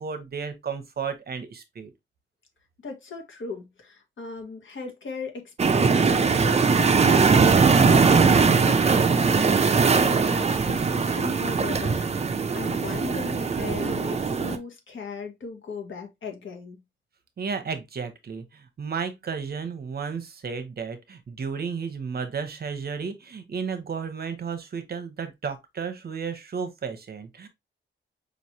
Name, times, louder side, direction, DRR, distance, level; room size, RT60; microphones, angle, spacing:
voice 1, 0.0-1.9 17.4-27.5, right 6 dB, 50° right, 0.8 m, -33 dB
voice 2, 2.8-16.8, left 4 dB, 80° left, 1.4 m, -38 dB
sound 1, 5.6-14.6, right 5 dB, 35° right, 0.5 m, -20 dB
5.1 x 3.1 x 2.7 m
wide cardioid pair, 160°, 20 cm